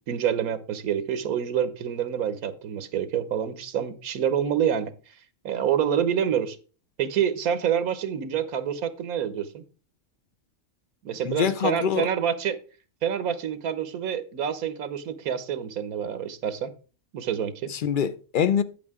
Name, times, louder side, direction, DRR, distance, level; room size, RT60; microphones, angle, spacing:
voice 1, 0.1-4.9 5.4-6.6 7.0-9.6 11.0-12.6 13.0-16.7 17.1-17.7, right 8 dB, 85° right, 1.4 m, -27 dB
voice 2, 11.2-12.1 17.7-18.6, left 8 dB, 60° left, 0.5 m, -24 dB
8.5 x 8.5 x 3.6 m
omnidirectional pair, 1.5 m